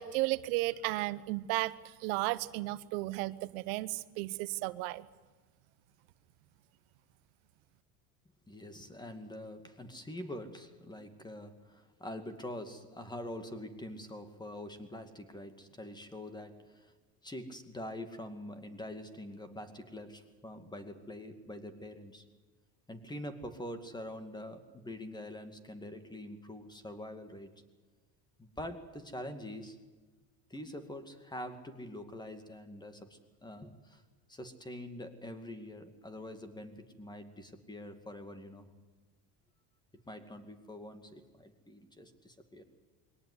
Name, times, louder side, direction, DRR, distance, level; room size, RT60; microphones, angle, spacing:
voice 1, 0.0-1.7 2.0-5.1, right 19 dB, 85° right, 15 dB, 0.9 m, -34 dB
voice 2, 8.5-16.9 17.2-22.3 22.9-27.5 28.4-29.8 30.5-34.0 34.3-38.7 40.1-42.6, left 1 dB, 10° left, 8 dB, 2.3 m, -45 dB
22.0 x 18.5 x 9.7 m, 1.3 s
cardioid pair, 125°, 43 cm